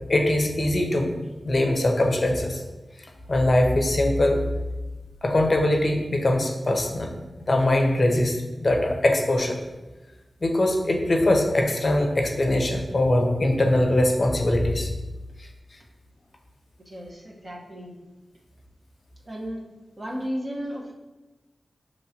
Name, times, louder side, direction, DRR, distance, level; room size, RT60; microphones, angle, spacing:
voice 1, 0.1-1.1 1.4-2.6 3.3-4.4 5.2-7.1 7.4-8.4 8.6-9.6 10.4-14.9, left 1 dB, 45° left, 2 dB, 0.6 m, -22 dB
voice 2, 16.9-17.9 19.3-19.6 20.0-20.9, equal, 35° right, -2 dB, 1.0 m, -34 dB
6.3 x 3.0 x 2.8 m, 1.1 s
wide cardioid pair, 105°, 0 cm